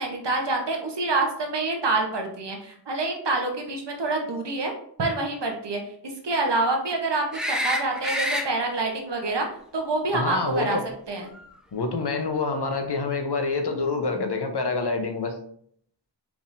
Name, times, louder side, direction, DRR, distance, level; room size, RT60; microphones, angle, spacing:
voice 1, 0.0-4.7 5.0-5.8 6.2-9.5 9.7-10.8 11.1-11.3, right 3 dB, 85° right, 2 dB, 1.0 m, -26 dB
sound 1, 7.3-8.5 11.3-11.5, equal, ahead, 0.6 m, -27 dB
voice 2, 10.1-10.8 11.7-15.3, left 3 dB, 75° left, 6 dB, 0.8 m, -26 dB
4.8 x 3.5 x 2.6 m, 0.63 s
wide cardioid pair, 50°, 41 cm